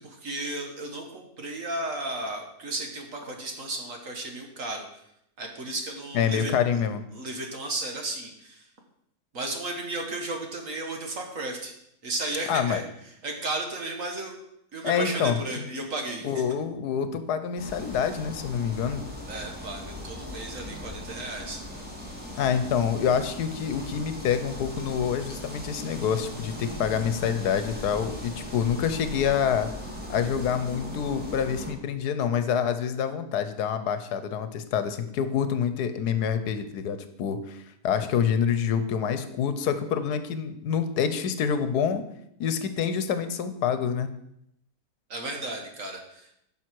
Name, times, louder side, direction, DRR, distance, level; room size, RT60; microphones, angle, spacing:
voice 1, 0.0-4.8 5.4-6.8 7.1-8.7 9.3-11.7 12.0-12.8 13.2-14.3 14.7-16.4 19.3-21.6 45.1-46.3, right 2 dB, 55° right, 3 dB, 1.8 m, -34 dB
voice 2, 6.1-7.0 12.5-12.8 14.8-15.6 16.2-19.0 22.4-29.7 30.1-42.0 42.4-44.1, left 7 dB, 80° left, 10 dB, 1.3 m, -27 dB
sound 1, 17.6-31.7, left 1 dB, 5° right, 1.9 m, -39 dB
10.5 x 6.3 x 4.7 m, 0.76 s
omnidirectional pair, 1.7 m